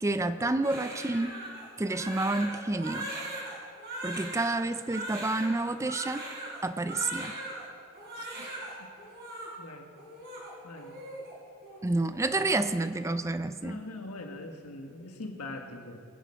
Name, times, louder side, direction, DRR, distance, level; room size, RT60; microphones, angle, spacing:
voice 1, 0.0-1.3 1.8-3.1 4.0-6.2 6.6-7.4 11.8-13.8, right 2 dB, 15° right, 11 dB, 0.4 m, -29 dB
Crying sobbing, 0.6-7.6 7.9-8.7 9.0-9.5 10.0-11.3 11.6-11.8 12.2-12.7, right 1 dB, 50° right, 4.2 m, -40 dB
voice 2, 8.2-8.5 8.8-8.9 9.6-9.9 10.6-11.0 13.6-16.0, left 2 dB, 85° left, 4 dB, 1.6 m, -42 dB
22.0 x 10.0 x 4.5 m, 2.3 s
head